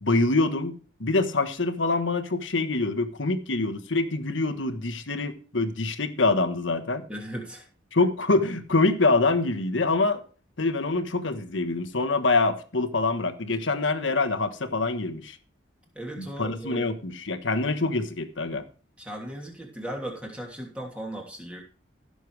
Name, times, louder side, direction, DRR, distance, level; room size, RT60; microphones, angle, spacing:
voice 1, 0.0-7.1 7.9-10.2 10.6-15.4 16.2-18.6, left 3 dB, 75° left, 1.3 m, -25 dB
voice 2, 7.1-7.6 15.9-17.0 19.0-21.6, right 1 dB, 5° right, 2.8 m, -37 dB
15.5 x 7.0 x 4.8 m
head